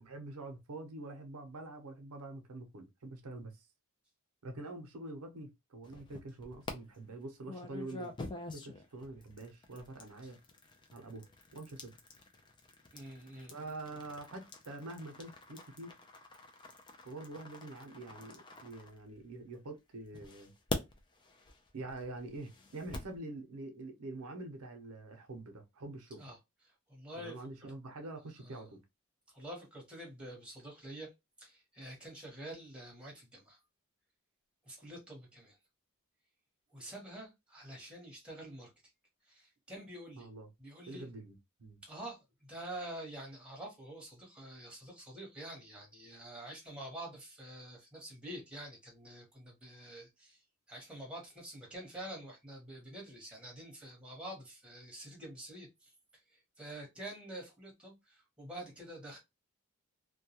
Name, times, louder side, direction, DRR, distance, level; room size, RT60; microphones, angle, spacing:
voice 1, 0.0-3.6 4.4-8.1 8.5-10.4 10.9-11.3 11.5-11.9 13.5-15.9 17.1-20.5 21.7-26.2 27.1-28.8 40.2-40.5 40.9-41.3 41.6-41.8, right 2 dB, 85° right, 0.6 m, -46 dB
sound 1, 5.8-6.7 7.5-19.5 20.1-23.2, left 2 dB, 20° left, 0.3 m, -46 dB
voice 2, 12.9-13.5 26.2-26.4 26.9-27.7 28.4-28.7 29.3-31.1 31.4-33.6 34.6-35.5 36.7-38.7 39.3-40.3 40.6-41.1 41.8-50.4 50.7-55.9 56.3-59.2, right 1 dB, 5° right, 1.0 m, -47 dB
2.2 x 2.2 x 2.8 m
head